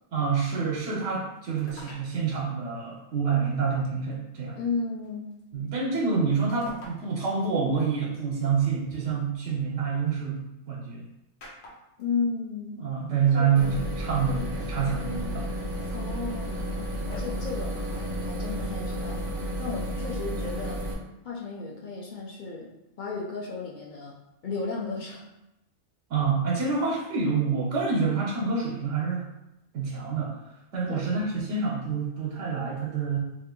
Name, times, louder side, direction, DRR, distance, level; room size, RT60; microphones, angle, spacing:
voice 1, 0.1-4.6 5.5-11.1 12.8-15.5 26.1-29.3 29.7-30.4 30.7-33.2, right 5 dB, 80° right, -3 dB, 1.0 m, -27 dB
sound 1, 1.6-2.1 3.4-3.5 5.0-5.4 6.6-7.0 7.4-7.5 8.9-10.1 11.4-12.0 13.0-13.1 13.3-13.4 14.4-15.0 15.4-17.2, left 2 dB, 80° left, 1.1 m, -47 dB
voice 2, 4.6-5.3 12.0-12.8 13.3-13.9 15.9-16.8 17.2-19.3 19.6-20.8 21.2-22.7 23.0-24.1 24.4-25.3 30.9-31.1, left 4 dB, 50° left, -3 dB, 0.6 m, -34 dB
sound 2, 13.6-20.9, equal, 55° right, 0.6 m, -32 dB
2.7 x 2.4 x 3.6 m, 0.91 s
omnidirectional pair, 1.3 m